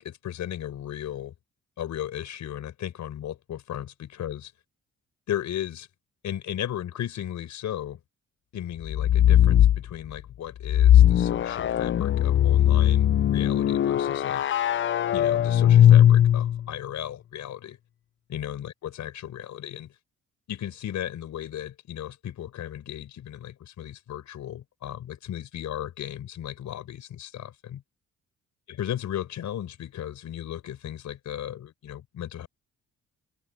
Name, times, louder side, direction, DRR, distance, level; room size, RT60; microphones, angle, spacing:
voice 1, 0.0-1.3 1.8-4.5 5.3-5.9 6.2-8.0 8.5-14.4 15.1-17.8 18.3-19.9 20.5-27.8 28.7-32.5, left 11 dB, 70° left, 5.1 m, -35 dB
sound 1, 8.8-9.8 10.6-16.6, left 11 dB, 40° left, 0.5 m, -19 dB
open air
cardioid pair, 90°, 30 cm